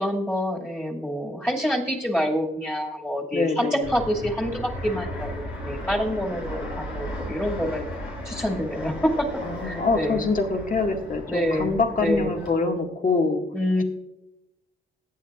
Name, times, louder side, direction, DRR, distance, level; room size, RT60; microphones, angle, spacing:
voice 1, 0.0-5.3 5.6-7.8 8.3-9.3 9.6-10.2 11.3-11.7 12.0-12.4 13.5-13.8, equal, 10° left, -1 dB, 2.3 m, -26 dB
voice 2, 3.3-4.0 9.4-13.4, left 3 dB, 40° left, 3 dB, 1.9 m, -25 dB
Fixed-wing aircraft airplane, 3.8-12.5, left 1 dB, 80° left, 4.6 m, -35 dB
20.5 x 8.8 x 2.5 m, 0.93 s
cardioid pair, 70°, 20 cm